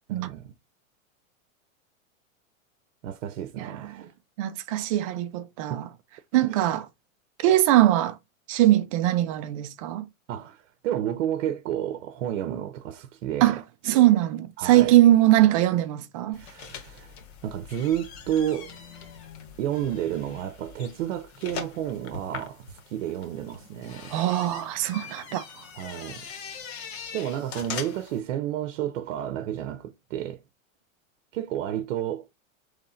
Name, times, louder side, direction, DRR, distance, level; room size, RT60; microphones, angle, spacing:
voice 1, 0.1-0.5 3.0-4.1 5.7-5.9 6.5-6.7 10.3-13.6 14.6-15.0 16.3-17.1 17.4-18.7 19.6-24.1 25.8-26.3 27.1-30.4 31.3-32.3, right 11 dB, 65° right, 0.8 m, -31 dB
voice 2, 3.6-4.1 4.4-5.8 6.3-6.9 7.4-8.2 8.5-10.0 13.4-16.4 24.1-25.5, right 14 dB, 30° right, 0.3 m, -21 dB
sound 1, 16.3-28.2, left 6 dB, 50° left, 1.2 m, -42 dB
3.7 x 3.2 x 4.2 m
supercardioid pair, 150°, 41 cm